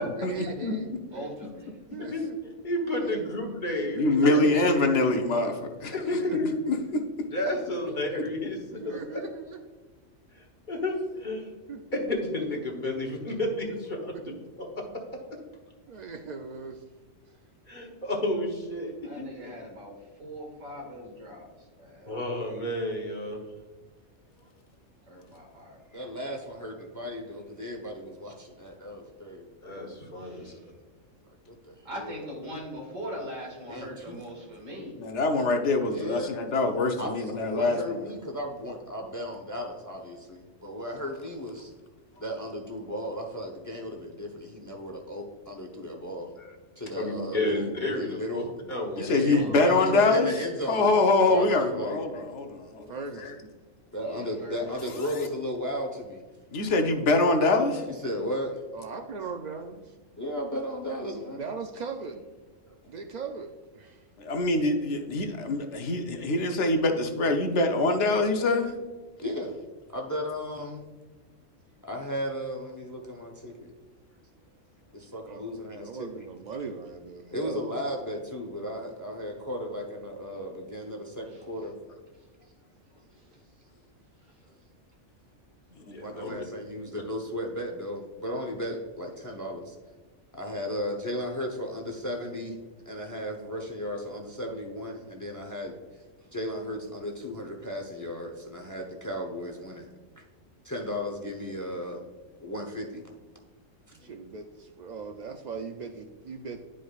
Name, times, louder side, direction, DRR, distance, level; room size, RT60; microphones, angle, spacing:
voice 1, 0.2-1.3 1.9-2.4 2.8-3.3 4.2-5.1 6.2-6.4 8.7-9.7 11.7-11.9 14.1-14.4 15.9-16.8 34.1-34.2 49.4-50.3 52.9-53.5 58.7-59.9 61.3-62.3 62.9-64.0 75.3-77.7 103.9-104.4 104.8-106.6, right 4 dB, 90° right, 5 dB, 0.3 m, -39 dB
voice 2, 1.1-2.0 19.0-22.2 25.1-26.6 30.1-30.7 31.8-35.0 49.3-50.1 54.0-54.6 65.8-65.9 81.3-81.4 83.1-83.4 84.1-84.4, equal, 75° right, -1 dB, 2.4 m, -42 dB
voice 3, 2.0-4.4 5.9-6.5 7.3-9.2 10.7-11.5 12.1-14.1 14.6-15.0 17.7-18.9 22.1-23.4 29.6-30.5 47.0-49.2 85.9-86.3, left 1 dB, 40° left, 0 dB, 1.2 m, -31 dB
voice 4, 3.9-5.9 6.6-7.0 35.0-38.0 49.0-50.3 50.7-52.9 53.2-53.3 56.5-57.8 64.2-68.8 86.2-86.4, left 2 dB, 65° left, 5 dB, 1.0 m, -24 dB
voice 5, 25.9-29.5 31.5-31.8 33.7-34.1 35.9-36.3 37.0-41.7 42.2-46.3 46.8-48.5 49.0-50.9 51.3-52.0 53.9-56.2 57.9-58.6 60.2-61.4 62.6-62.7 69.2-69.5 69.9-70.9 71.8-73.7 74.9-76.2 77.3-81.8 85.9-89.7 90.3-92.6 92.9-95.7 96.3-99.9 100.2-100.3 100.6-102.0 102.4-103.0, equal, 15° left, 2 dB, 0.7 m, -35 dB
11.0 x 4.9 x 2.4 m, 1.3 s
omnidirectional pair, 1.3 m